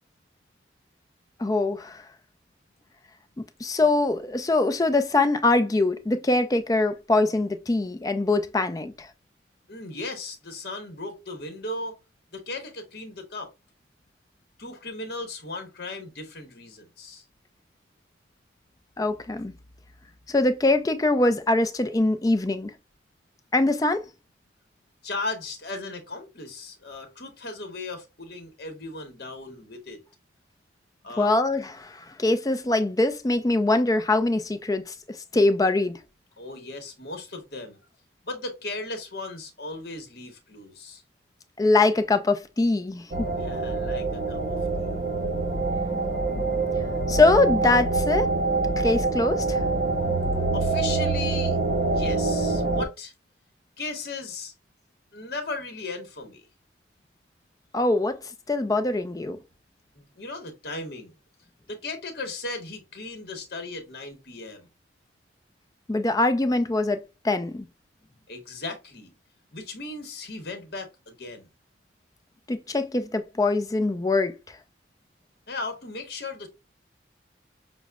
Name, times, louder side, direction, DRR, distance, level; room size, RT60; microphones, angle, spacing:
voice 1, 1.4-2.0 3.6-9.1 19.0-19.5 20.3-22.7 23.5-24.0 31.2-36.0 41.6-43.3 47.1-48.3 48.8-49.6 57.7-58.2 58.5-59.4 65.9-67.7 72.5-74.3, left 2 dB, 20° left, 0.4 m, -23 dB
voice 2, 9.7-12.0 12.3-13.5 14.6-17.2 25.0-30.0 31.0-31.4 36.4-37.8 38.2-41.0 43.4-44.9 50.5-51.6 51.9-53.1 53.8-54.5 55.1-56.5 59.9-61.1 61.7-64.7 68.3-69.1 69.5-71.5 75.5-76.5, left 3 dB, 55° left, 1.0 m, -36 dB
sound 1, 43.1-52.9, right 3 dB, 45° right, 0.6 m, -25 dB
6.1 x 2.0 x 2.2 m
head